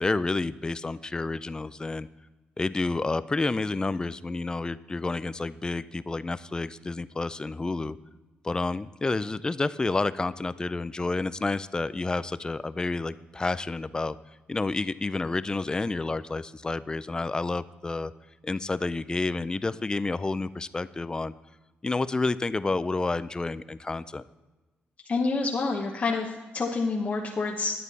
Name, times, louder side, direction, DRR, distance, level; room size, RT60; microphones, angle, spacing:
voice 1, 0.0-2.1 2.6-8.0 8.4-14.2 14.5-18.1 18.4-21.3 21.8-24.2, left 3 dB, 20° left, 16 dB, 0.4 m, -29 dB
voice 2, 25.1-27.8, left 3 dB, 40° left, 0 dB, 1.0 m, -28 dB
11.0 x 8.9 x 4.0 m, 1.2 s
cardioid pair, 90°, 4 cm